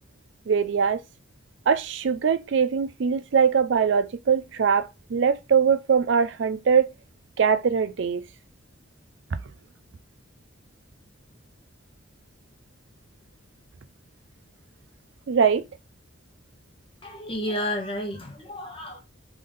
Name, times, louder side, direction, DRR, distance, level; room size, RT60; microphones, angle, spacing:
voice 1, 0.5-1.0 1.7-6.9 7.4-8.2 15.3-15.6, right 6 dB, 60° right, 0.4 m, -22 dB
voice 2, 17.0-19.0, equal, 25° left, 1.2 m, -31 dB
3.8 x 3.5 x 3.8 m
head